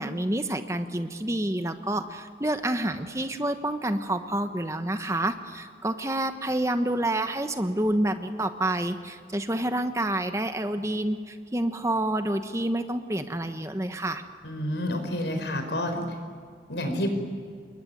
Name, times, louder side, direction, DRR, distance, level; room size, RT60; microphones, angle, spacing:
voice 1, 0.0-14.2, right 1 dB, 15° right, 8 dB, 1.1 m, -28 dB
voice 2, 14.4-16.0 16.7-17.1, left 1 dB, 85° left, 6 dB, 5.2 m, -29 dB
28.5 x 21.5 x 9.4 m, 2.1 s
head